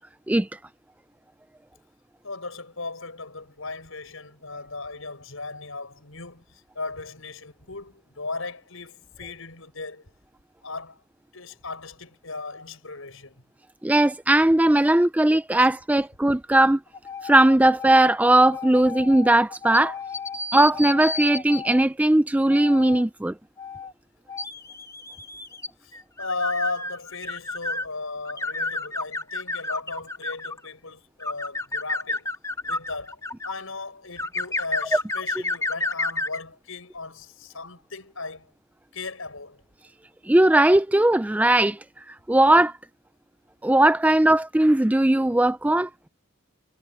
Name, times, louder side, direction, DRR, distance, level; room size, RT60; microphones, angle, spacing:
voice 1, 2.2-10.1 10.6-11.0 11.3-13.4 25.8-32.3 32.6-38.5 38.9-39.6, left 3 dB, 70° left, 6.0 m, -36 dB
voice 2, 13.8-16.8 17.2-19.9 20.5-23.3 40.3-41.8 42.3-42.7 43.6-45.9, right 1 dB, 5° right, 0.3 m, -18 dB
sound 1, 16.9-21.8 22.5-23.0 23.6-23.9 24.3-27.9 28.2-30.7 31.2-33.5 34.2-36.4, left 3 dB, 15° left, 2.0 m, -31 dB
head